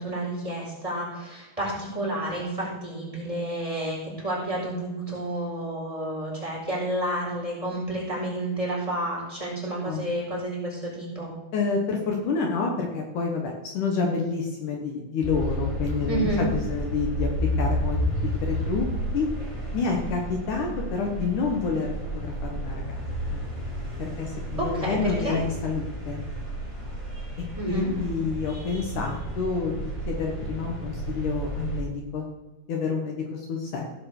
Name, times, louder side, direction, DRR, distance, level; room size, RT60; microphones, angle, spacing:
voice 1, 0.0-11.3 16.1-16.5 24.6-25.4 27.6-27.9, right 1 dB, 10° right, -4 dB, 4.7 m, -30 dB
voice 2, 9.8-10.1 11.5-17.3 17.6-18.9 19.1-19.3 19.7-23.4 24.0-26.2 27.6-32.3 32.7-33.9, left 4 dB, 65° left, 1 dB, 2.7 m, -29 dB
sound 1, 15.2-31.8, equal, 10° left, 3.1 m, -31 dB
16.5 x 5.8 x 6.7 m, 1.1 s
omnidirectional pair, 4.0 m